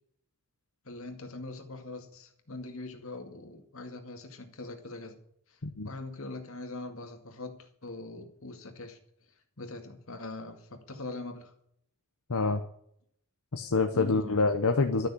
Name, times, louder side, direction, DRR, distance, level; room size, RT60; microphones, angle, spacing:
voice 1, 0.9-5.2 5.8-9.0 9.6-11.5 13.9-14.4, left 2 dB, 70° left, 5 dB, 2.2 m, -42 dB
voice 2, 12.3-12.6 13.5-15.1, left 3 dB, 90° left, 6 dB, 1.0 m, -26 dB
12.5 x 6.5 x 9.6 m, 0.69 s
head